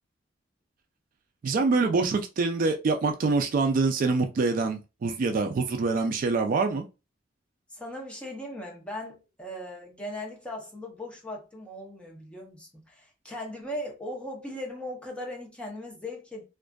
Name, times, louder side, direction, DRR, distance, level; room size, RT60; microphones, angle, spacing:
voice 1, 1.4-6.8, right 3 dB, 45° right, 0.3 m, -25 dB
voice 2, 7.7-16.4, left 1 dB, 5° left, 0.6 m, -38 dB
2.5 x 2.4 x 2.2 m
head